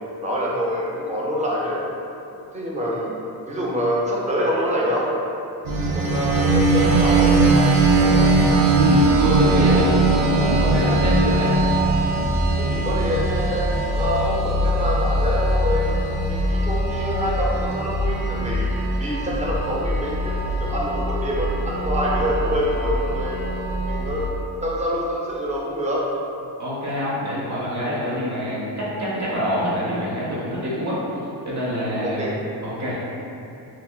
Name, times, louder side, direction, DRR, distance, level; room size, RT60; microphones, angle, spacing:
voice 1, 0.2-1.8 2.5-3.2 3.5-5.1 5.9-7.6 8.0-8.3 12.6-15.9 16.2-23.4 23.8-24.3 24.6-26.0 32.0-32.4, equal, 20° right, -5 dB, 0.4 m, -26 dB
sound 1, 5.6-24.3, right 2 dB, 75° right, 0.6 m, -21 dB
voice 2, 8.7-11.6 26.6-31.0 31.5-32.2 32.6-33.0, equal, 40° right, -7 dB, 0.9 m, -25 dB
2.9 x 2.7 x 2.3 m, 2.8 s
cardioid pair, 115°, 42 cm